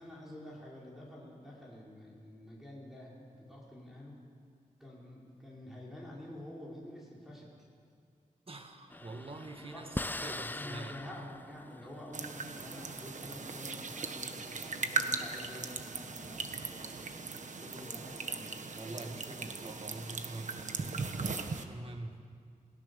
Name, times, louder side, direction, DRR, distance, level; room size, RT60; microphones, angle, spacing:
voice 1, 0.0-4.2 4.8-7.7 9.7-9.9 10.3-19.5, left 1 dB, ahead, -5 dB, 4.9 m, -49 dB
voice 2, 8.5-11.0 18.8-22.2, right 2 dB, 40° right, 5 dB, 1.9 m, -45 dB
sound 1, 8.9-13.6, left 2 dB, 15° left, 0.4 m, -42 dB
sound 2, 12.1-21.6, right 4 dB, 60° right, 1.4 m, -38 dB
28.0 x 17.5 x 7.0 m, 2.2 s
wide cardioid pair, 130°, 14 cm